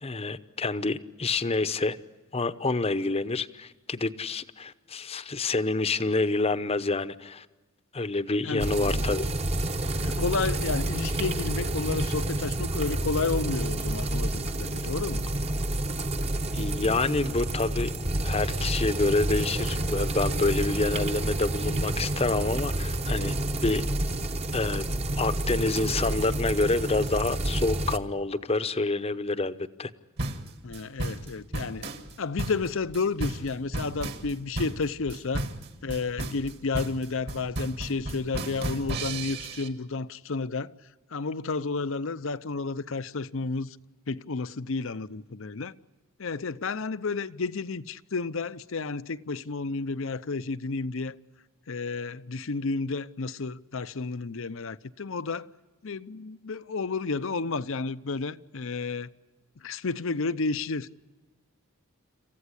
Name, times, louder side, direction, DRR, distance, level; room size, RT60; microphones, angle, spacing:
voice 1, 0.0-2.0 2.3-7.5 7.9-9.3 16.5-17.9 18.2-23.8 24.5-29.9, left 3 dB, 30° left, 0.8 m, -28 dB
voice 2, 8.4-9.0 10.0-15.3 30.6-31.9 32.2-35.5 35.8-40.7 41.1-43.8 44.1-45.7 46.2-51.2 51.7-55.5 55.8-59.1 59.6-60.9, left 4 dB, 65° left, 0.7 m, -31 dB
sound 1, 8.6-28.0, right 1 dB, 30° right, 1.0 m, -29 dB
sound 2, 30.2-39.7, right 2 dB, 50° right, 2.0 m, -34 dB
27.5 x 15.0 x 9.9 m
head